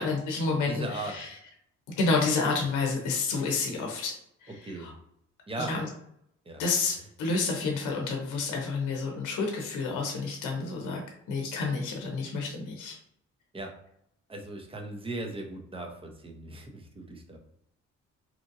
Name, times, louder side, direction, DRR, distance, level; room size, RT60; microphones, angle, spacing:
voice 1, 0.0-1.3 2.0-4.1 4.4-4.9 5.6-5.9 6.6-11.0 11.3-13.0, left 4 dB, 85° left, 1 dB, 0.7 m, -29 dB
voice 2, 0.6-1.3 4.6-4.9 5.5-5.8 6.5-6.6 13.5-13.7 14.3-17.4, right 2 dB, 20° right, 2 dB, 0.7 m, -38 dB
2.9 x 2.5 x 2.6 m, 0.72 s
cardioid pair, 90°, 30 cm